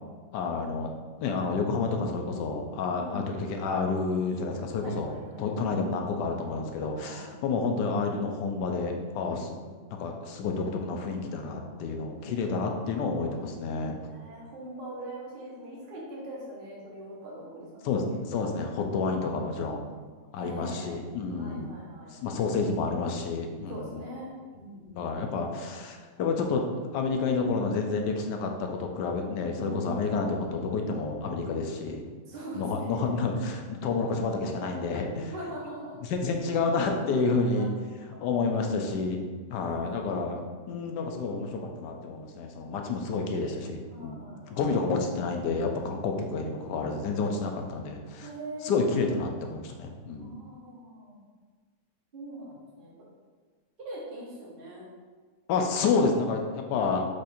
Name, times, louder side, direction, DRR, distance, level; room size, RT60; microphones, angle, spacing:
voice 1, 0.3-0.9 1.2-9.5 9.9-14.0 17.8-19.8 20.3-21.7 22.1-24.0 24.9-26.6 26.9-32.0 32.5-35.3 36.0-37.7 38.2-39.2 39.5-44.2 44.5-48.3 48.6-50.3 55.5-57.0, left 4 dB, 90° left, 3 dB, 1.2 m, -29 dB
voice 2, 2.9-3.3 4.8-5.7 6.9-7.3 9.5-9.8 13.0-13.3 14.0-18.0 18.3-18.5 19.0-19.5 20.3-21.0 21.3-22.2 22.5-22.6 23.7-25.2 29.5-30.1 32.3-33.2 35.3-36.0 37.6-37.7 38.1-38.4 39.5-40.1 43.9-44.6 48.2-48.9 50.2-51.2 52.1-52.9 53.8-54.8, right 1 dB, 35° right, -6 dB, 1.1 m, -42 dB
4.9 x 2.6 x 4.2 m, 1.5 s
omnidirectional pair, 1.8 m